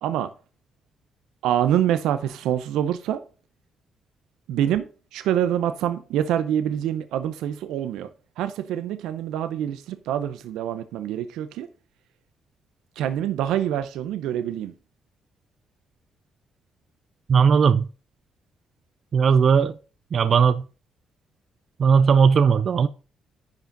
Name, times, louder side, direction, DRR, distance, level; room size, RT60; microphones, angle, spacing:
voice 1, 1.4-3.2 4.5-4.9 5.1-8.1 8.4-11.7 13.0-14.7, right 10 dB, 90° right, 0.7 m, -25 dB
voice 2, 17.3-17.9 19.1-19.7 20.1-20.6 21.8-22.9, right 6 dB, 50° right, 0.4 m, -17 dB
10.5 x 5.0 x 3.9 m
cardioid pair, 90°, 0 cm